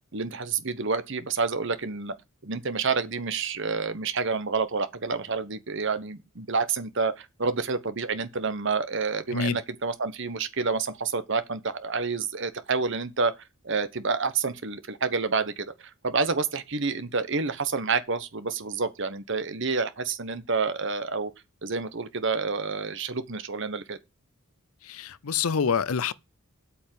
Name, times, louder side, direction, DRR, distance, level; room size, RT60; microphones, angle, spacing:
voice 1, 0.1-2.1 2.4-13.3 13.6-21.3 21.6-24.0, right 4 dB, 55° right, 1.1 m, -28 dB
voice 2, 24.8-26.1, left 6 dB, 75° left, 0.6 m, -26 dB
8.4 x 5.3 x 7.6 m
head